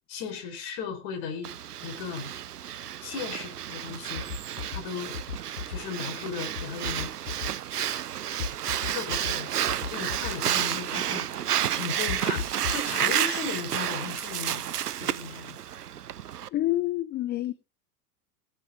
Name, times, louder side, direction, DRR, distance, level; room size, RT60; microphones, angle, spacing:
voice 1, 0.1-1.5 1.8-2.3 3.0-4.3 4.7-5.2 5.7-7.1 8.8-9.5 9.9-11.3 11.7-12.4 12.7-14.6 15.0-15.6, left 6 dB, 50° left, 4.2 m, -36 dB
Breathing, 1.4-16.5, right 10 dB, 85° right, 0.6 m, -31 dB
sound 1, 4.2-4.8 5.1-5.8 6.6-7.5 8.4-9.3 9.7-10.3 12.1-12.9, left 6 dB, 85° left, 0.8 m, -34 dB
voice 2, 16.5-17.5, left 15 dB, 25° left, 0.5 m, -27 dB
17.5 x 8.2 x 3.5 m
figure-of-eight pair, 85°, 45 cm